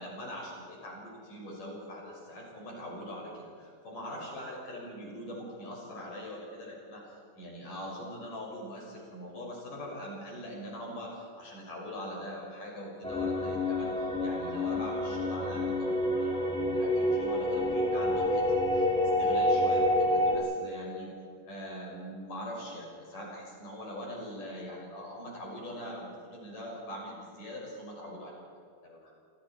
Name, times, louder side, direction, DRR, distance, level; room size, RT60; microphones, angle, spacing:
voice 1, 0.0-18.4 18.7-18.9 19.2-21.1 21.5-28.4 28.8-29.1, equal, 50° left, -2 dB, 7.8 m, -42 dB
sound 1, 13.0-20.4, left 1 dB, ahead, 6.3 m, -28 dB
29.0 x 28.0 x 4.6 m, 2.5 s
omnidirectional pair, 5.0 m